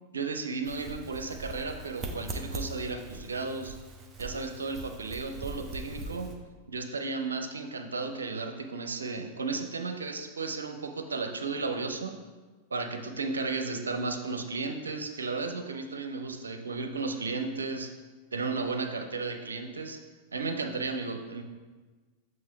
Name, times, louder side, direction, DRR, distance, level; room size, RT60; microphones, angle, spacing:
voice 1, 0.1-3.8 4.2-6.4 6.7-12.2 12.7-17.9 18.3-20.0 20.3-21.4, right 4 dB, 75° right, 7 dB, 0.5 m, -34 dB
sound 1, 0.6-6.3, right 2 dB, 20° right, 0.8 m, -41 dB
7.4 x 3.2 x 4.5 m, 1.3 s
figure-of-eight pair, 90°, 0 cm